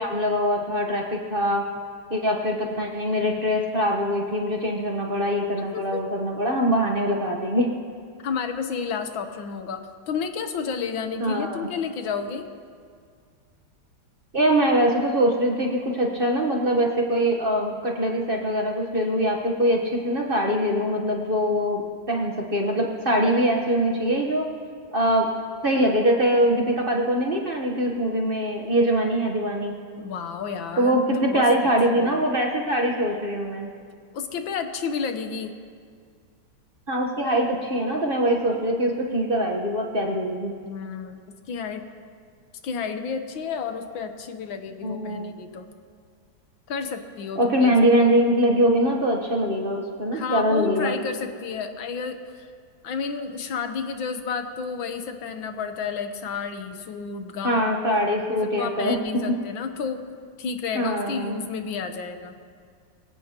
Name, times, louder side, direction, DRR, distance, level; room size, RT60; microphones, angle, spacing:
voice 1, 0.0-1.6 2.1-7.7 11.2-11.7 14.3-24.5 24.9-25.3 25.6-29.7 30.8-33.7 36.9-40.5 44.8-45.3 47.4-50.9 57.4-59.0 60.7-61.4, equal, 35° right, 0 dB, 1.1 m, -23 dB
voice 2, 5.6-6.0 8.2-12.5 30.0-31.7 31.9-32.2 34.1-35.5 40.6-41.2 41.5-41.9 42.6-45.7 46.7-47.8 50.1-52.5 52.8-58.0 58.3-60.0 60.4-62.4, left 6 dB, 85° left, 7 dB, 1.8 m, -31 dB
23.5 x 16.0 x 2.9 m, 2.1 s
omnidirectional pair, 2.1 m